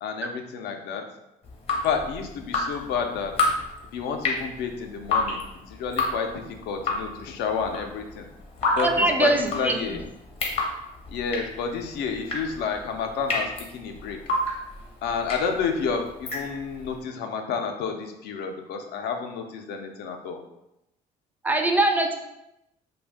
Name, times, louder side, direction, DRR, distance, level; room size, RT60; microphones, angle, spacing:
voice 1, 0.0-1.0 1.8-3.5 3.9-8.3 8.7-10.0 11.1-14.2 15.0-20.4, left 5 dB, 80° left, 5 dB, 0.4 m, -30 dB
Drip, 1.4-16.9, left 2 dB, 35° left, 0.7 m, -30 dB
voice 2, 8.8-9.8 21.4-22.1, right 2 dB, 10° right, 4 dB, 0.3 m, -22 dB
2.5 x 2.2 x 3.4 m, 0.88 s
cardioid pair, 110°, 17 cm